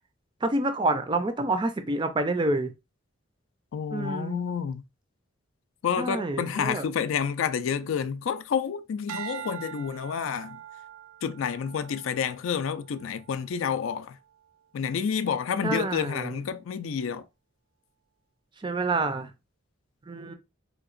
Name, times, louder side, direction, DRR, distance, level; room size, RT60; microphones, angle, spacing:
voice 1, 0.4-2.7 3.9-4.4 6.0-6.9 15.6-16.4 18.6-19.3 20.1-20.3, right 2 dB, 20° right, 0.4 m, -28 dB
voice 2, 3.7-4.8 5.8-10.6 11.2-14.2 14.7-17.2, left 7 dB, 75° left, 0.3 m, -29 dB
sound 1, 9.1-13.5 14.1-14.5, right 10 dB, 90° right, 0.4 m, -43 dB
3.5 x 2.9 x 2.4 m
head